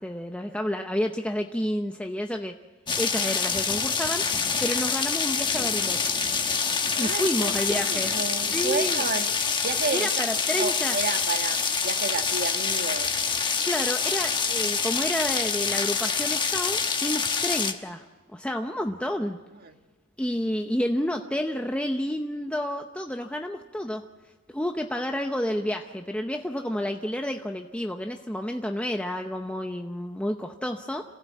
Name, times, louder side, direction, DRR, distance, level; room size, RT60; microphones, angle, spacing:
voice 1, 0.0-2.5 3.0-4.2 4.6-6.2 7.0-8.1 8.5-9.0 9.9-11.0 13.6-19.4 20.2-24.1 24.5-31.0, left 1 dB, 5° left, 4 dB, 0.7 m, -30 dB
sound 1, 2.9-17.7, left 5 dB, 20° left, 1.2 m, -26 dB
voice 2, 6.9-9.3 9.6-13.2 19.6-19.8, right 4 dB, 50° right, 6 dB, 1.6 m, -32 dB
27.0 x 16.0 x 8.3 m, 1.3 s
head